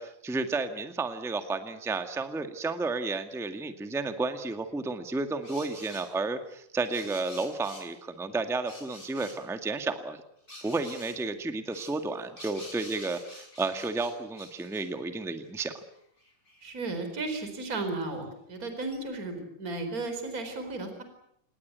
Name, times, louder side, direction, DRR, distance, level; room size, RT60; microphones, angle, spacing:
voice 1, 0.0-10.2 10.6-15.8, right 3 dB, 5° right, 7 dB, 0.5 m, -32 dB
sound 1, 5.4-6.1 6.8-7.9 8.6-9.4 10.5-11.2 11.7-14.9 15.5-15.6 15.8-17.0 18.2-18.3 18.9-19.0, left 1 dB, 15° left, 6.1 m, -48 dB
voice 2, 16.6-21.0, right 3 dB, 25° right, 7 dB, 4.6 m, -34 dB
27.5 x 20.0 x 8.3 m, 0.72 s
omnidirectional pair, 3.8 m